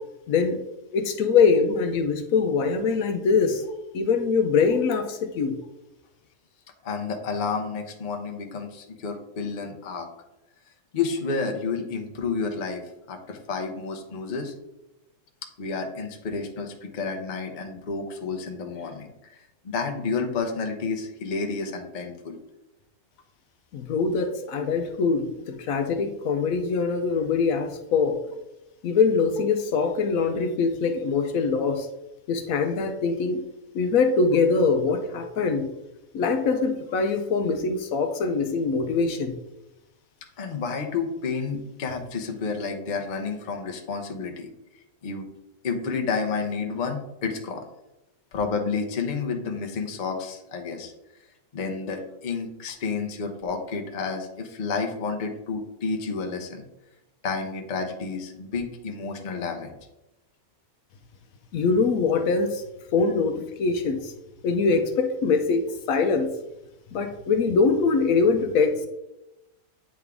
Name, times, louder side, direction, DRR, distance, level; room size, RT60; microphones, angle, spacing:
voice 1, 0.3-0.6 0.9-3.6 3.9-5.6 23.7-28.2 28.8-31.9 32.3-33.4 33.7-35.7 36.1-39.3 61.5-62.6 62.9-64.1 64.4-66.3 66.9-68.9, left 4 dB, 70° left, 7 dB, 1.0 m, -23 dB
voice 2, 6.8-10.1 10.9-14.5 15.6-22.4 40.4-44.5 45.0-45.3 45.6-47.6 48.3-50.9 51.5-56.6 57.2-59.7, left 4 dB, 40° left, 4 dB, 0.7 m, -30 dB
8.7 x 3.6 x 3.5 m, 0.92 s
omnidirectional pair, 1.5 m